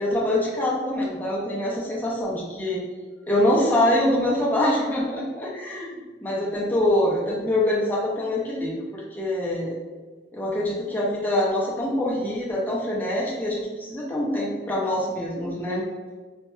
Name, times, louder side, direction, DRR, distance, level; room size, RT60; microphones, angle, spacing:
voice 1, 0.0-2.8 3.3-9.8 10.3-15.8, left 1 dB, 10° left, -5 dB, 0.6 m, -24 dB
4.2 x 2.7 x 2.3 m, 1.3 s
head